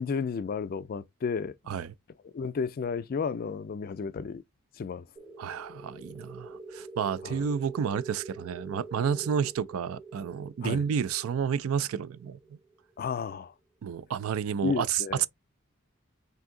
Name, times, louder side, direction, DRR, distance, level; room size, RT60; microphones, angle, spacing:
voice 1, 0.0-1.8 2.3-4.4 4.8-5.0 7.2-7.5 10.6-10.8 13.0-13.5 14.6-15.3, left 5 dB, 45° left, 0.3 m, -32 dB
sound 1, 5.2-13.5, right 3 dB, 25° right, 0.9 m, -46 dB
voice 2, 5.4-12.4 13.8-15.3, right 7 dB, 90° right, 0.3 m, -30 dB
3.4 x 2.7 x 3.7 m
head